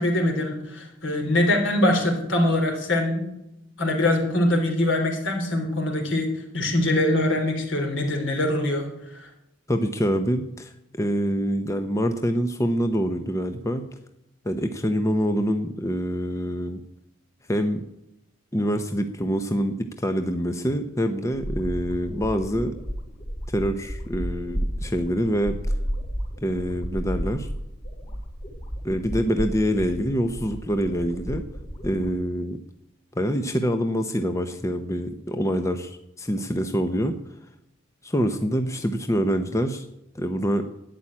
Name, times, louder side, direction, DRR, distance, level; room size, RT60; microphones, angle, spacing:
voice 1, 0.0-3.3 3.8-6.3 6.5-8.9 9.1-9.3, left 1 dB, 70° left, 3 dB, 3.5 m, -23 dB
voice 2, 9.7-13.8 14.4-16.8 17.5-17.8 18.5-22.8 23.5-25.6 26.4-27.5 28.8-31.4 31.8-32.6 33.2-37.2 38.0-39.9 40.1-40.6, equal, 15° left, 7 dB, 0.8 m, -25 dB
sound 1, 21.3-32.1, equal, 45° left, 4.1 m, -32 dB
12.0 x 8.6 x 9.8 m, 0.85 s
head